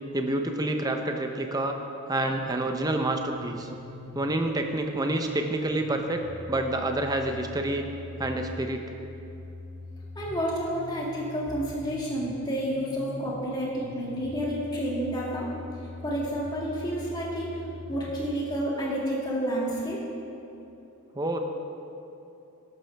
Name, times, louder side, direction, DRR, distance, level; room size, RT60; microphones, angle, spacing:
voice 1, 0.1-1.8 2.1-3.7 4.1-7.9 8.2-8.9 21.1-21.4, right 1 dB, 15° right, 4 dB, 0.7 m, -28 dB
sound 1, 2.2-18.2, left 1 dB, 35° right, 2.0 m, -43 dB
voice 2, 10.2-15.5 16.0-17.5 17.9-20.0, equal, 20° left, -5 dB, 2.2 m, -30 dB
12.0 x 12.0 x 3.4 m, 2.9 s
head